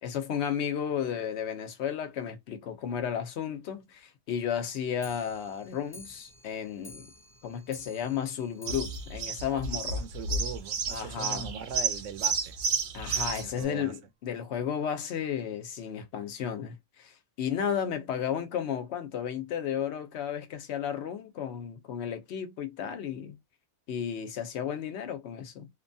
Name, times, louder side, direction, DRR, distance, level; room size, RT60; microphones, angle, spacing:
voice 1, 0.0-7.1 7.4-10.1 10.9-11.5 12.9-23.4 23.9-25.7, left 8 dB, 70° left, 0.9 m, -33 dB
Clock, 4.9-10.4 10.8-10.9 11.1-11.2 11.6-11.7 11.9-12.0 12.7-12.8 13.5-13.6 14.3-14.4, left 1 dB, 15° left, 0.4 m, -52 dB
sound 1, 8.7-13.6, right 4 dB, 60° right, 0.6 m, -31 dB
voice 2, 10.0-12.6 13.4-13.9, right 7 dB, 85° right, 0.9 m, -40 dB
2.8 x 2.2 x 2.6 m
omnidirectional pair, 1.3 m